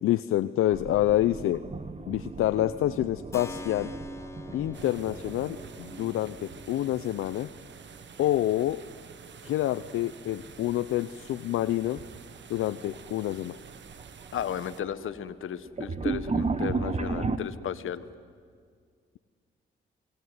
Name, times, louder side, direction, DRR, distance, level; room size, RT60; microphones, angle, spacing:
voice 1, 0.0-1.6 2.1-3.9 4.5-7.5 8.2-8.8 9.4-12.0 12.5-13.6, left 13 dB, 90° left, 12 dB, 0.6 m, -27 dB
sound 1, 0.7-7.5 7.8-8.7 10.4-10.7 11.3-11.4 12.4-12.5 12.8-13.3 13.7-17.4, right 4 dB, 30° right, 1.5 m, -35 dB
Keyboard (musical), 3.3-11.9, left 3 dB, 15° left, 1.5 m, -48 dB
sound 2, 4.7-14.8, right 7 dB, 60° right, 1.4 m, -48 dB
voice 2, 14.3-18.0, left 9 dB, 75° left, 13 dB, 1.2 m, -34 dB
28.5 x 20.5 x 9.5 m, 2.1 s
cardioid pair, 70°, 21 cm